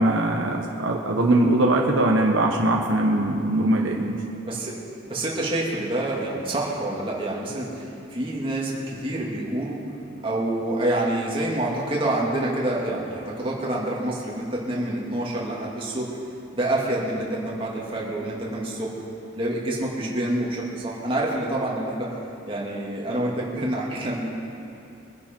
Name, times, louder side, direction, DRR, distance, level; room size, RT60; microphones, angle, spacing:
voice 1, 0.0-4.2, right 1 dB, 65° right, 0 dB, 1.2 m, -21 dB
voice 2, 4.5-4.8 5.1-9.8 10.2-16.1 16.5-18.9 19.4-22.2 22.4-24.2, right 1 dB, 25° right, -4 dB, 2.3 m, -27 dB
23.0 x 10.5 x 4.5 m, 2.7 s
head